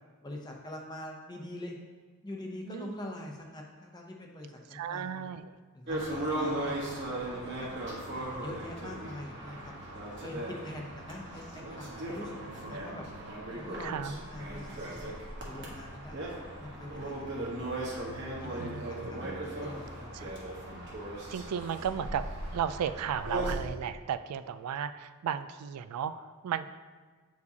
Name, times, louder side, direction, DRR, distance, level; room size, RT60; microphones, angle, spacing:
voice 1, 0.2-1.7 2.2-5.2 5.7-7.2 7.6-7.7 8.2-9.7 10.2-13.1 13.6-15.2 15.4-16.1 16.6-17.6 18.1-20.3, left 1 dB, 20° left, 0 dB, 0.6 m, -44 dB
voice 2, 4.7-5.5 13.8-14.1 18.6-19.1 20.1-20.3 21.3-22.2 22.5-26.7, right 8 dB, 90° right, 15 dB, 0.3 m, -34 dB
sound 1, 5.9-23.5, right 1 dB, 50° right, 1.2 m, -38 dB
8.0 x 4.7 x 2.8 m, 1.4 s
head